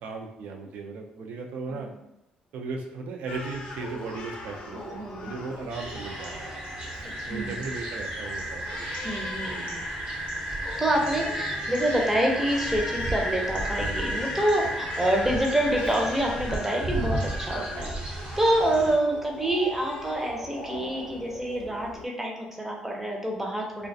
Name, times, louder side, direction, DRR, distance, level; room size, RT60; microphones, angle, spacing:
voice 1, 0.0-1.9 2.5-6.6 7.3-9.1 9.6-9.7 14.6-14.8 17.7-17.9, right 4 dB, 70° right, 3 dB, 0.4 m, -37 dB
Crying sobbing, 3.3-22.1, left 2 dB, 55° left, 0.5 m, -40 dB
voice 2, 4.7-5.3 7.0-7.5 9.0-9.9 10.8-23.9, right 1 dB, 10° right, 0 dB, 0.5 m, -27 dB
sound 1, 5.7-18.9, right 1 dB, 50° right, 0.8 m, -33 dB
2.3 x 2.1 x 2.6 m, 0.85 s
cardioid pair, 120°, 3 cm